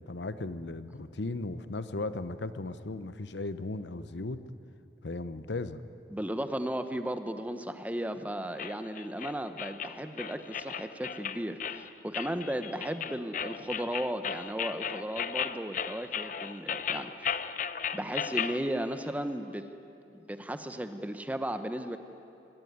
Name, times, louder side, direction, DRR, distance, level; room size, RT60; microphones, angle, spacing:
voice 1, 0.0-4.4 5.0-5.8, left 2 dB, 85° left, 12 dB, 0.9 m, -36 dB
voice 2, 6.1-17.4 17.9-19.6 20.2-22.0, right 1 dB, 10° right, 9 dB, 0.8 m, -35 dB
sound 1, 8.6-18.6, left 8 dB, 45° left, 0.7 m, -35 dB
24.0 x 18.0 x 9.4 m, 2.7 s
head